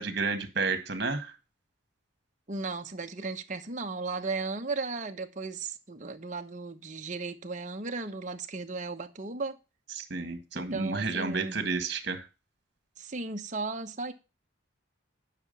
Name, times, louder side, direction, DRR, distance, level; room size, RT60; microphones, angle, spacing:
voice 1, 0.0-1.3 9.9-12.2, right 4 dB, 55° right, 1.7 m, -31 dB
voice 2, 2.5-9.6 10.5-11.6 13.0-14.1, right 3 dB, 35° right, 1.0 m, -35 dB
9.7 x 6.0 x 5.3 m
head